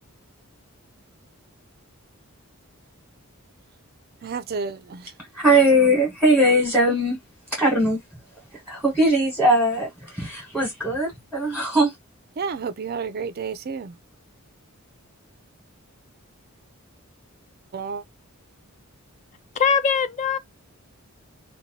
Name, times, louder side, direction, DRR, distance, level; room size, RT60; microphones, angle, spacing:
voice 1, 4.2-5.1 12.4-13.9 17.7-18.0, right 5 dB, 45° right, 0.4 m, -31 dB
voice 2, 5.4-7.2 7.5-8.0 8.7-9.9 10.2-11.9, right 1 dB, ahead, 1.2 m, -19 dB
voice 3, 19.6-20.4, left 6 dB, 35° left, 0.3 m, -21 dB
2.7 x 2.2 x 2.8 m
head